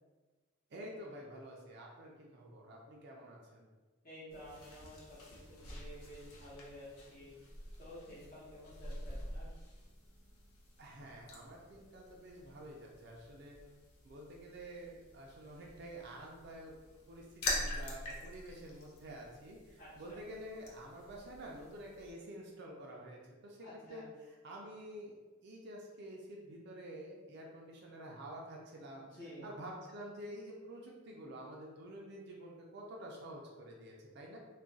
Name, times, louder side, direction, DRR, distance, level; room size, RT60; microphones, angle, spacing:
voice 1, 0.7-3.7 10.8-13.6 14.0-16.7 17.1-29.1 29.4-34.4, right 1 dB, 50° right, -2 dB, 0.4 m, -49 dB
voice 2, 4.0-7.4 7.8-9.5 19.8-20.2 23.6-24.0 29.2-29.5, left 1 dB, 40° left, -10 dB, 0.8 m, -52 dB
sound 1, 4.3-22.1, left 1 dB, 85° left, 0.7 m, -46 dB
2.3 x 2.2 x 3.8 m, 1.3 s
head